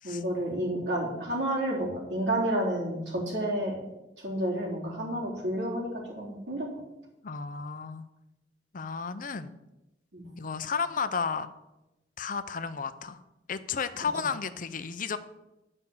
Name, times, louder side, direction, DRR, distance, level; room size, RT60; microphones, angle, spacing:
voice 1, 0.0-3.8 4.2-6.7 10.1-10.3, right 1 dB, 90° right, -3 dB, 3.3 m, -30 dB
voice 2, 7.2-8.0 8.7-9.6 10.4-11.5 12.2-13.2 13.5-15.2, left 5 dB, 50° left, 12 dB, 0.6 m, -33 dB
11.0 x 5.4 x 7.1 m, 0.96 s
head